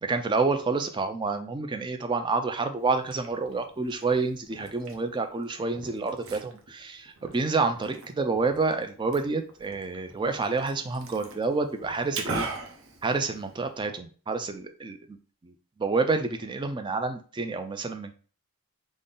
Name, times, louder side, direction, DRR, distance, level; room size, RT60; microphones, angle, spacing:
voice 1, 0.0-12.5 13.0-15.2 15.4-15.5 15.8-18.2, right 3 dB, 20° right, 7 dB, 0.3 m, -28 dB
Liquid, 2.8-13.8, right 3 dB, 60° right, 0.7 m, -41 dB
3.7 x 2.1 x 3.8 m, 0.39 s
head